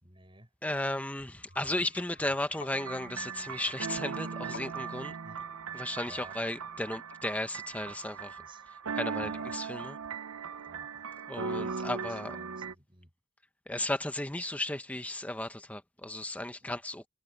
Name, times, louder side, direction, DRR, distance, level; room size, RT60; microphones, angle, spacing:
voice 1, 0.0-0.5 5.2-5.4 6.1-6.3 8.4-8.6 9.2-9.6 10.7-11.1 11.6-13.1 16.6-16.8, right 2 dB, 25° right, 4.9 m, -54 dB
voice 2, 0.6-5.2 5.7-10.0 11.3-12.4 13.7-17.1, left 1 dB, 5° left, 0.9 m, -35 dB
sound 1, 1.3-8.1, left 3 dB, 55° left, 3.4 m, -53 dB
sound 2, 2.7-12.7, right 5 dB, 85° right, 0.7 m, -39 dB
head